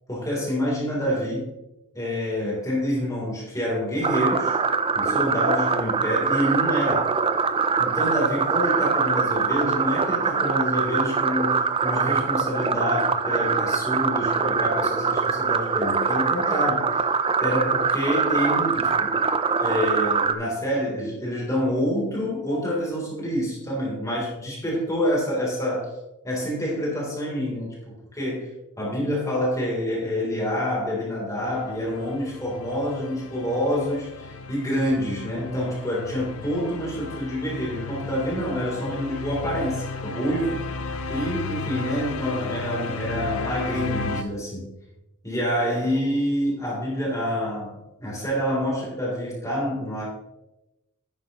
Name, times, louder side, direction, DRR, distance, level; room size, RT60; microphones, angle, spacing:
voice 1, 0.1-1.5 1.9-4.6 4.9-7.1 7.8-16.8 17.4-19.1 19.6-25.9 26.2-40.7 41.1-44.7 45.2-50.0, equal, 15° left, -5 dB, 3.6 m, -27 dB
sound 1, 4.0-20.3, right 5 dB, 25° right, 0.5 m, -23 dB
sound 2, 31.4-44.2, left 4 dB, 85° left, 0.7 m, -34 dB
11.0 x 9.1 x 3.1 m, 0.94 s
head